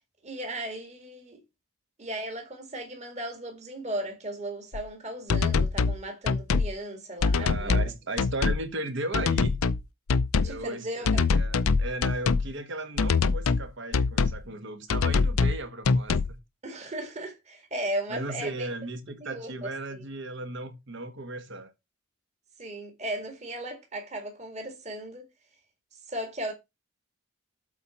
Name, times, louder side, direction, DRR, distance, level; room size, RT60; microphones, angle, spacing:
voice 1, 0.2-1.4 2.0-7.9 10.4-11.2 16.6-18.7 19.2-20.0 22.6-25.2 26.1-26.5, right 1 dB, 35° right, 2.0 m, -36 dB
sound 1, 4.7-4.8 5.3-6.0 6.3-6.7 7.2-7.9 8.2-8.6 9.1-9.8 10.1-10.6 11.0-12.5 13.0-13.6 13.9-14.4 14.9-15.6 15.8-16.3, left 4 dB, 80° left, 0.5 m, -24 dB
voice 2, 7.3-9.7 10.4-16.4 18.1-21.7, right 2 dB, 60° right, 1.4 m, -36 dB
8.1 x 4.1 x 5.8 m
head